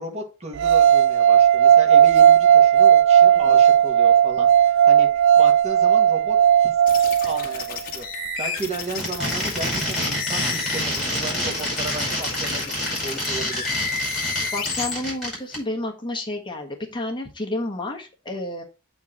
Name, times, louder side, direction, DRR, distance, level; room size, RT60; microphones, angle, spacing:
voice 1, 0.0-5.1 5.4-6.8 7.2-13.6, right 2 dB, 35° right, 2 dB, 1.8 m, -34 dB
sound 1, 0.6-7.7, right 9 dB, 65° right, 0.3 m, -15 dB
sound 2, 6.9-14.9, left 5 dB, 45° left, 1.8 m, -32 dB
sound 3, 8.9-15.6, equal, ahead, 5.3 m, -27 dB
voice 2, 14.5-18.6, left 1 dB, 25° left, 1 dB, 1.4 m, -30 dB
8.3 x 4.6 x 4.4 m, 0.29 s
head